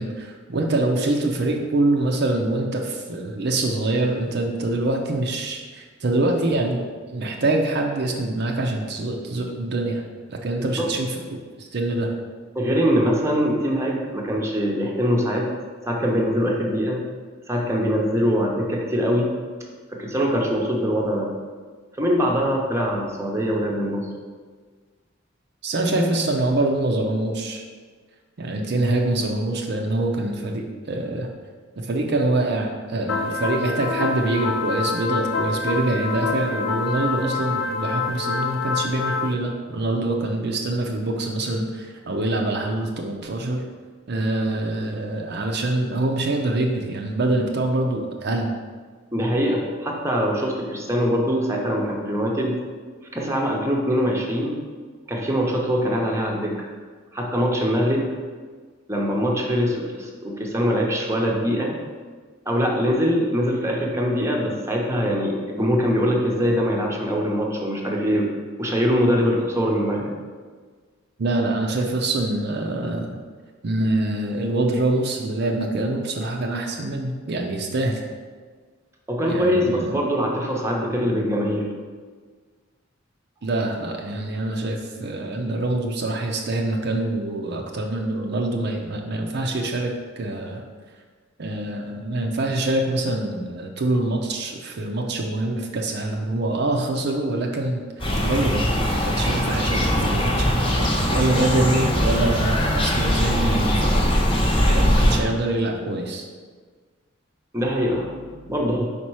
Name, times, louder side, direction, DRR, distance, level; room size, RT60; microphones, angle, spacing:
voice 1, 0.0-6.8 7.1-10.0 10.3-12.1 25.6-27.6 28.4-31.3 31.8-43.6 44.1-48.5 71.2-73.1 73.6-78.0 79.2-80.1 83.4-90.6 91.4-104.0 104.6-106.2, right 2 dB, 55° right, 1 dB, 0.6 m, -25 dB
voice 2, 12.5-15.5 15.9-17.1 17.5-19.3 20.0-21.3 22.0-24.1 49.1-52.5 53.1-54.6 55.1-56.7 57.1-58.1 58.9-61.8 62.5-68.3 68.6-70.1 79.1-81.7 107.5-108.8, equal, 15° right, -1 dB, 0.8 m, -23 dB
sound 1, 33.1-39.3, left 4 dB, 80° left, 0.4 m, -26 dB
sound 2, 98.0-105.2, equal, 25° left, 0.9 m, -21 dB
5.1 x 4.3 x 4.7 m, 1.5 s
head